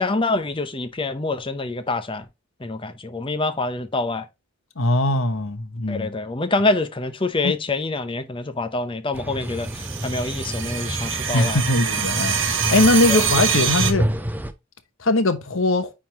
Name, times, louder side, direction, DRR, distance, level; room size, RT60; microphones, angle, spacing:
voice 1, 0.0-2.3 2.6-4.3 5.9-11.6 13.1-13.2, left 3 dB, 25° left, 0.7 m, -26 dB
voice 2, 4.8-6.1 7.4-7.5 11.3-14.0 15.0-15.9, left 2 dB, 70° left, 1.1 m, -21 dB
sound 1, 9.1-14.5, equal, 10° right, 0.5 m, -28 dB
sound 2, 9.6-13.9, right 7 dB, 60° right, 1.0 m, -25 dB
9.2 x 3.7 x 2.9 m
head